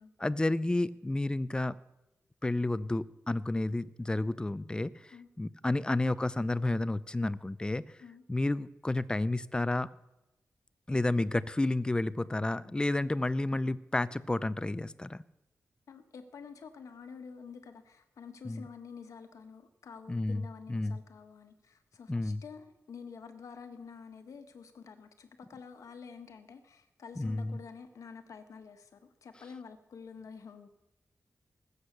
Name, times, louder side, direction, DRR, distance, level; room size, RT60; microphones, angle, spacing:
voice 1, 0.2-1.8 2.4-4.9 5.4-7.8 8.3-9.9 10.9-15.2 18.5-18.6 20.1-20.4 20.7-21.0 22.1-22.4 27.2-27.6, left 2 dB, 15° left, 17 dB, 0.5 m, -31 dB
voice 2, 15.9-30.7, left 5 dB, 85° left, 7 dB, 1.4 m, -49 dB
20.0 x 8.1 x 6.7 m, 0.95 s
wide cardioid pair, 95°, 5 cm